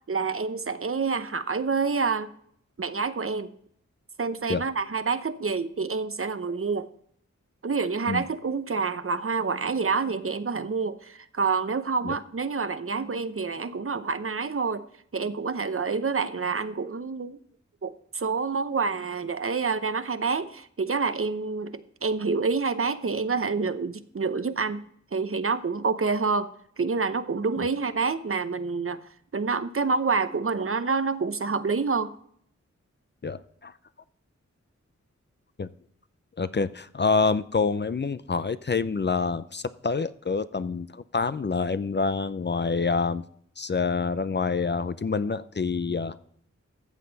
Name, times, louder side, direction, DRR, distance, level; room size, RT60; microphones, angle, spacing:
voice 1, 0.1-2.3 2.8-3.5 4.2-6.9 7.6-14.9 15.1-17.4 17.8-24.8 25.1-26.5 26.8-29.0 29.3-32.1, right 4 dB, 50° right, 12 dB, 0.7 m, -27 dB
voice 2, 33.2-33.7 35.6-35.7 36.4-43.2 43.6-46.2, left 4 dB, 40° left, 14 dB, 0.5 m, -27 dB
14.0 x 7.5 x 4.0 m, 0.66 s
wide cardioid pair, 65°, 29 cm